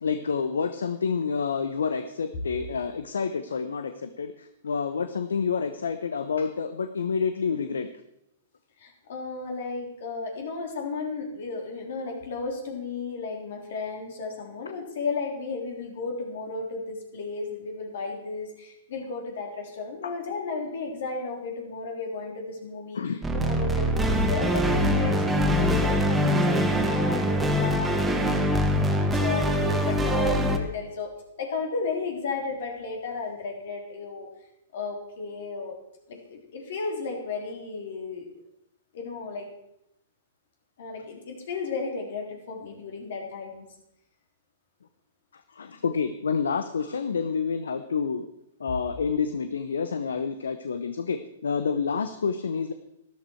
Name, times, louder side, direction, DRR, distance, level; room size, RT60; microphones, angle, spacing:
voice 1, 0.0-7.9 20.0-20.1 22.9-23.2 45.5-48.3 48.6-52.7, left 5 dB, 80° left, 10 dB, 0.8 m, -28 dB
voice 2, 8.8-34.3 34.7-35.8 36.1-38.3 38.9-39.5 40.8-43.7, left 4 dB, 65° left, 2 dB, 3.6 m, -34 dB
sound 1, 23.2-30.6, equal, 10° right, 1.5 m, -23 dB
13.0 x 12.5 x 4.6 m, 0.82 s
hypercardioid pair, 115°, 0 cm